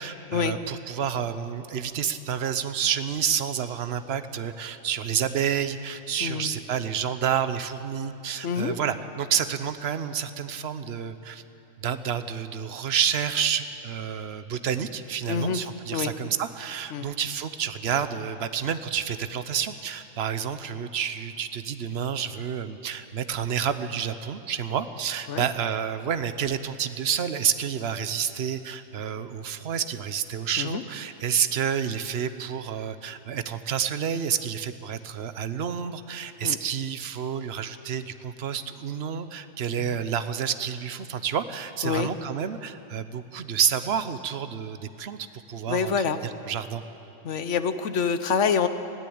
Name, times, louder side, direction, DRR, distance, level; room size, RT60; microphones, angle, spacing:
voice 1, 0.0-11.4 11.8-45.9 46.4-46.8, right 8 dB, 60° right, 11 dB, 1.0 m, -29 dB
voice 2, 6.2-6.6 8.4-8.8 15.3-15.6 15.9-16.1 16.9-17.1 25.3-25.4 30.6-30.8 36.4-36.6 39.8-40.0 41.8-42.1 45.7-46.2 47.2-48.7, left 6 dB, 70° left, 11 dB, 1.2 m, -26 dB
20.0 x 15.5 x 8.7 m, 2.8 s
omnidirectional pair, 1.3 m